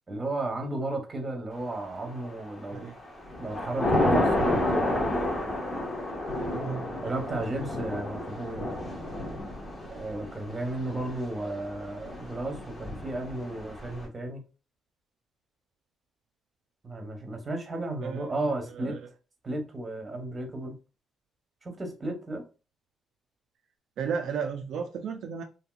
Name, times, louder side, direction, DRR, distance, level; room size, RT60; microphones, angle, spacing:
voice 1, 0.1-2.9 3.4-5.0 7.0-8.8 9.9-14.4 16.8-19.0 19.4-20.8 21.6-22.4, right 2 dB, 30° right, 1.0 m, -34 dB
Thunder / Rain, 2.0-2.5 2.9-14.1, left 1 dB, 25° left, 1.1 m, -30 dB
voice 2, 6.5-7.0 18.0-18.3 18.7-19.0 24.0-25.4, right 6 dB, 75° right, 0.4 m, -33 dB
2.8 x 2.8 x 2.3 m
cardioid pair, 90°, 0 cm